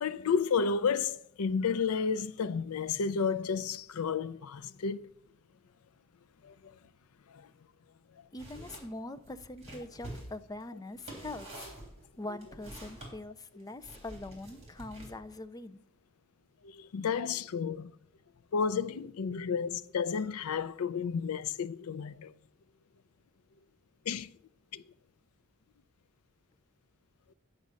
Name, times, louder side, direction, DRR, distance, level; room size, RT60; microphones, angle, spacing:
voice 1, 0.0-5.1 6.4-6.8 7.3-7.5 16.6-17.9 18.5-22.3 24.1-24.3 24.7-24.8, left 6 dB, 75° left, 0.4 m, -32 dB
voice 2, 8.3-11.7 12.2-15.8, left 2 dB, 15° left, 0.4 m, -43 dB
sound 1, 8.4-8.9 9.2-13.1 13.8-15.4, right 1 dB, 30° right, 3.4 m, -47 dB
9.4 x 5.2 x 7.5 m
head